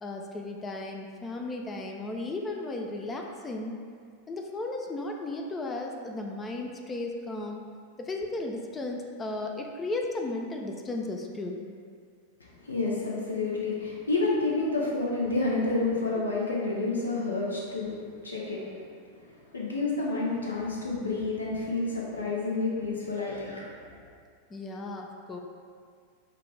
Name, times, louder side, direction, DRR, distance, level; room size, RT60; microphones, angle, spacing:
voice 1, 0.0-3.7 4.3-7.6 8.0-11.7 24.5-25.4, left 2 dB, 20° left, 2 dB, 0.4 m, -35 dB
voice 2, 12.4-18.9 19.2-23.9, left 3 dB, 75° left, -4 dB, 0.6 m, -30 dB
5.8 x 2.4 x 3.2 m, 2.1 s
figure-of-eight pair, 90°, 0 cm